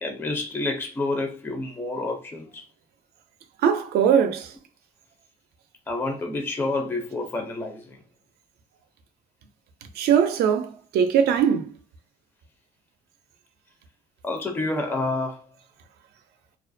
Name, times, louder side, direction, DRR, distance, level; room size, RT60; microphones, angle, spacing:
voice 1, 0.0-2.6 5.9-8.0 14.2-15.5, left 2 dB, 15° left, 0.4 m, -29 dB
voice 2, 3.6-4.5 10.0-11.7, right 8 dB, 75° right, 0.5 m, -21 dB
2.3 x 2.1 x 2.5 m
cardioid pair, 110°, 17 cm